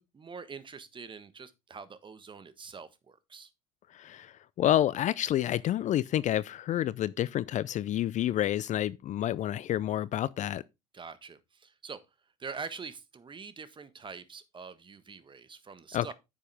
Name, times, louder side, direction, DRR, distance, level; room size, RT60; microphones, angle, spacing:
voice 1, 0.0-3.5 10.9-12.0 12.4-16.1, right 5 dB, 25° right, 1.4 m, -44 dB
voice 2, 3.9-10.6 15.9-16.1, left 12 dB, 40° left, 0.5 m, -29 dB
9.8 x 7.2 x 3.5 m
hypercardioid pair, 75°, 19 cm